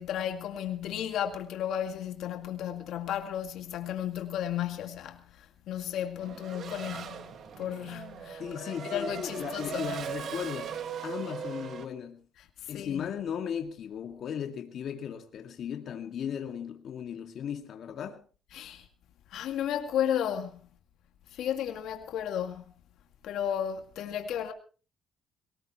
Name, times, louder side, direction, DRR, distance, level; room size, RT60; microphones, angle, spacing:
voice 1, 0.0-10.0 12.6-13.1 18.5-18.9 19.3-20.7 21.3-22.7 23.2-24.5, left 10 dB, 80° left, 2.1 m, -34 dB
Race car auto racing / Accelerating revving vroom, 6.2-11.9, right 8 dB, 65° right, 2.1 m, -39 dB
voice 2, 8.4-10.8 11.0-12.3 12.7-18.2, left 8 dB, 65° left, 2.0 m, -36 dB
21.5 x 19.0 x 3.1 m
cardioid pair, 90°, 0 cm